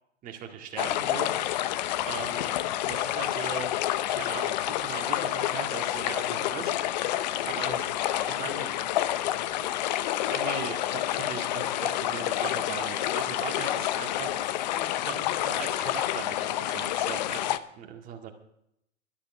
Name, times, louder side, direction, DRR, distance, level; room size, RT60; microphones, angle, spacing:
voice 1, 0.2-1.3 2.0-2.6 2.9-3.7 4.1-6.7 7.4-8.7 10.3-14.4 15.1-15.2 15.5-18.3, right 7 dB, 20° right, 2 dB, 2.0 m, -39 dB
sound 1, 0.8-17.6, left 13 dB, 35° left, 0.6 m, -29 dB
voice 2, 14.3-15.7 17.2-17.3, left 4 dB, 15° left, 5 dB, 2.0 m, -45 dB
12.0 x 11.5 x 6.0 m, 0.76 s
hypercardioid pair, 130°, 37 cm